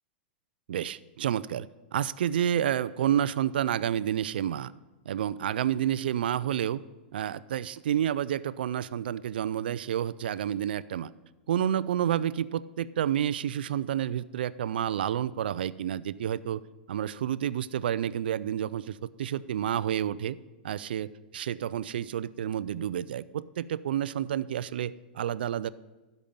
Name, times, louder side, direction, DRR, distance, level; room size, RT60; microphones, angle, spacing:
voice 1, 0.7-4.7 5.1-6.8 7.1-11.1 11.5-16.6 16.9-20.4 20.6-25.7, right 10 dB, 75° right, 17 dB, 0.4 m, -29 dB
12.5 x 5.3 x 7.1 m, 1.2 s
hypercardioid pair, 110°, 5 cm